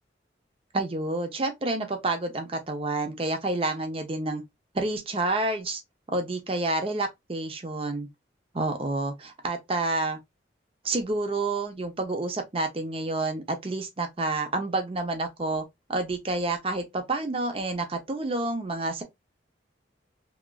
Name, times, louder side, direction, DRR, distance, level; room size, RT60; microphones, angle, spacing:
voice 1, 0.7-4.4 4.7-5.8 6.1-8.1 8.5-10.2 10.8-15.6 15.9-19.0, right 2 dB, 30° right, 0.5 m, -29 dB
2.9 x 2.4 x 2.2 m
head